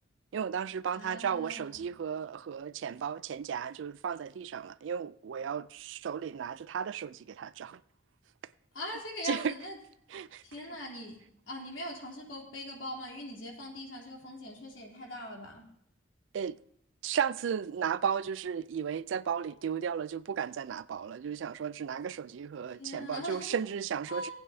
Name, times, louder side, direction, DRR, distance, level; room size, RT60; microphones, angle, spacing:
voice 1, 0.3-7.8 9.2-9.6 10.1-10.8 16.3-16.6 17.0-24.3, right 7 dB, 75° right, 0.4 m, -34 dB
voice 2, 0.9-1.9 8.7-9.8 10.4-11.2 11.5-15.6 22.8-23.6 24.1-24.3, left 1 dB, 80° left, 3.2 m, -41 dB
19.0 x 8.8 x 2.7 m
head